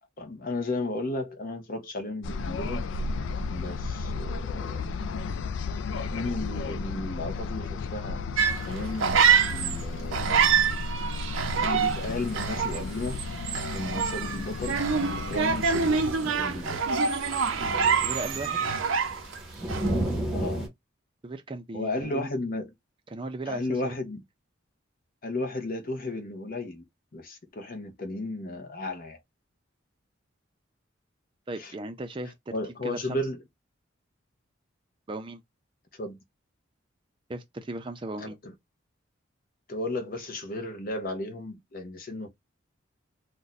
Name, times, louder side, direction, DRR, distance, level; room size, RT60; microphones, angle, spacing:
voice 1, 0.2-2.8 3.5-4.9 6.1-8.2 8.7-9.2 9.5-10.3 11.6-13.2 13.7-14.8 15.2-16.8 20.3-20.6 21.7-22.7 23.5-24.2 25.2-26.8 27.1-29.2 31.6-31.7 32.5-33.4 36.0-36.2 38.2-38.5 39.7-42.3, left 2 dB, 45° left, 0.7 m, -34 dB
sound 1, 2.2-16.1, left 4 dB, 65° left, 0.3 m, -34 dB
sound 2, 8.4-9.8 10.1-19.4 19.7-20.1, right 6 dB, 80° right, 0.5 m, -26 dB
sound 3, 11.8-20.7, right 1 dB, ahead, 0.9 m, -36 dB
voice 2, 18.0-18.6 21.2-22.3 23.1-23.9 31.5-32.5 32.8-33.2 35.1-35.4 37.3-38.4, right 2 dB, 25° right, 0.4 m, -36 dB
2.5 x 2.2 x 3.9 m
head